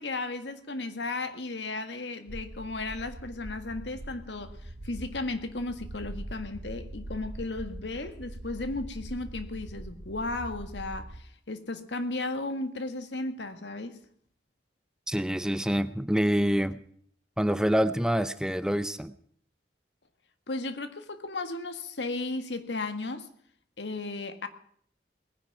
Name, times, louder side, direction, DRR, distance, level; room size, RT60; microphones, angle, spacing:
voice 1, 0.0-14.0 20.5-23.3 23.8-24.5, left 2 dB, 90° left, 9 dB, 1.8 m, -35 dB
sound 1, 2.3-11.2, right 1 dB, 65° right, 1.0 m, -42 dB
voice 2, 15.1-16.8 17.4-19.1, equal, 5° right, 13 dB, 0.6 m, -26 dB
19.5 x 10.5 x 5.9 m, 0.62 s
head